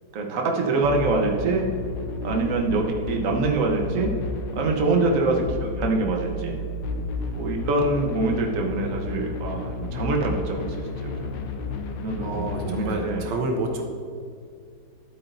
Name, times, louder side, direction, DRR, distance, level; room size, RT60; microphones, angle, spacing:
voice 1, 0.1-1.6 2.2-4.1 4.5-6.6 7.4-11.4 12.0-13.3, right 3 dB, 50° right, 1 dB, 1.3 m, -25 dB
sound 1, 0.8-12.8, left 3 dB, 85° left, 1.4 m, -32 dB
voice 2, 12.2-13.8, right 2 dB, 75° right, 2 dB, 1.5 m, -29 dB
12.0 x 8.4 x 2.6 m, 2.3 s
omnidirectional pair, 1.9 m